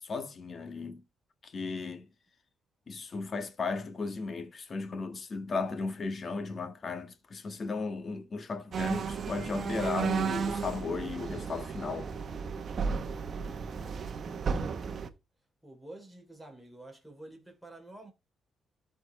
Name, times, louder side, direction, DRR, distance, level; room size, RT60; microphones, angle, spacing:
voice 1, 0.0-1.0 1.4-2.0 2.9-12.1, left 4 dB, 40° left, 1.5 m, -35 dB
sound 1, 8.7-15.1, right 6 dB, 50° right, 1.1 m, -34 dB
voice 2, 14.3-15.1 15.6-18.1, right 1 dB, ahead, 3.4 m, -50 dB
13.0 x 4.6 x 3.2 m
cardioid pair, 90°, 0 cm